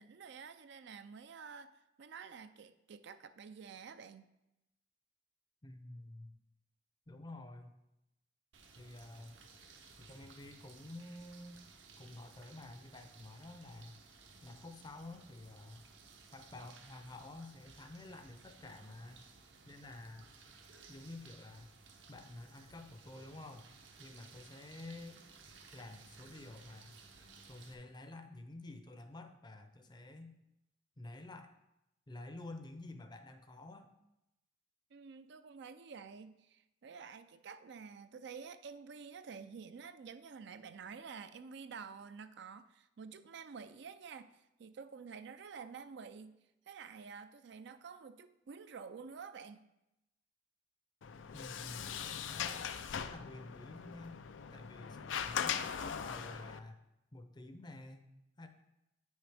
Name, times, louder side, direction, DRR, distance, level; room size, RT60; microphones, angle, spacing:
voice 1, 0.0-4.3 34.9-46.4 46.7-49.7, right 6 dB, 65° right, 11 dB, 0.4 m, -50 dB
voice 2, 5.6-6.4 7.1-7.7 8.8-9.4 10.0-11.6 12.0-14.0 14.4-15.8 16.3-19.2 19.6-20.3 20.9-21.7 22.1-23.7 24.0-25.2 25.7-26.9 27.5-30.3 31.0-31.5 32.1-33.9 51.3-52.6 52.9-54.2 54.5-56.8 57.1-58.1 58.4-58.5, left 2 dB, 25° left, 7 dB, 0.6 m, -50 dB
sound 1, 8.5-27.7, right 4 dB, 80° right, 1.0 m, -59 dB
Sliding door, 51.0-56.6, left 7 dB, 80° left, 0.4 m, -40 dB
8.9 x 6.3 x 3.4 m, 0.89 s
head